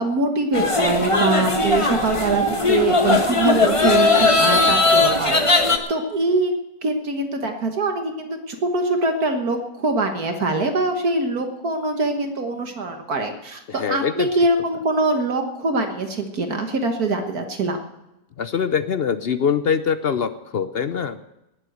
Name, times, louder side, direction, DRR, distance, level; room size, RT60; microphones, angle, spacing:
voice 1, 0.0-6.5 6.8-17.8, right 2 dB, 60° right, 5 dB, 1.9 m, -23 dB
sound 1, 0.5-5.8, left 3 dB, 20° left, 1.3 m, -18 dB
voice 2, 13.7-14.3 18.4-21.2, left 7 dB, 65° left, 11 dB, 0.5 m, -23 dB
19.5 x 7.8 x 7.9 m, 0.92 s
omnidirectional pair, 1.8 m